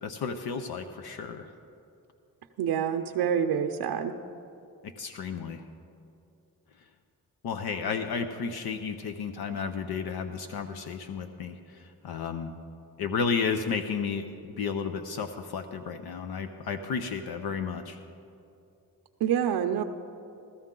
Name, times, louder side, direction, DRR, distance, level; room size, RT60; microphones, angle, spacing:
voice 1, 0.0-1.5 4.8-5.6 7.4-12.5 13.0-18.0, left 5 dB, 75° left, 7 dB, 0.7 m, -32 dB
voice 2, 2.6-4.1 19.2-19.8, right 8 dB, 85° right, 4 dB, 0.6 m, -27 dB
16.0 x 13.0 x 3.8 m, 2.6 s
cardioid pair, 75°, 38 cm